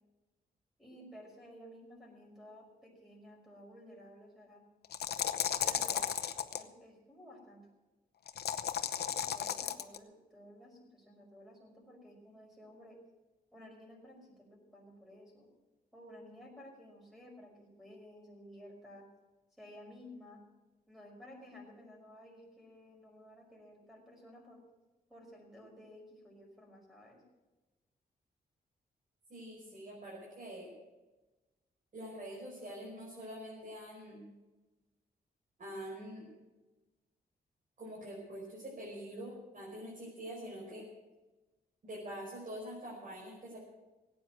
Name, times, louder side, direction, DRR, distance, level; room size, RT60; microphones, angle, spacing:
voice 1, 0.8-4.6 5.6-6.1 6.5-7.7 9.1-13.0 13.5-15.5 15.9-19.1 19.6-20.4 20.9-24.6 25.1-27.2, equal, ahead, 0 dB, 5.4 m, -54 dB
sound 1, 4.8-6.6 8.3-10.0, left 9 dB, 80° left, 0.8 m, -34 dB
voice 2, 29.3-30.7 31.9-34.2 35.6-36.3 37.8-40.8 41.8-43.6, equal, 55° right, -4 dB, 5.3 m, -45 dB
17.5 x 9.2 x 7.8 m, 1.1 s
wide cardioid pair, 125°, 17 cm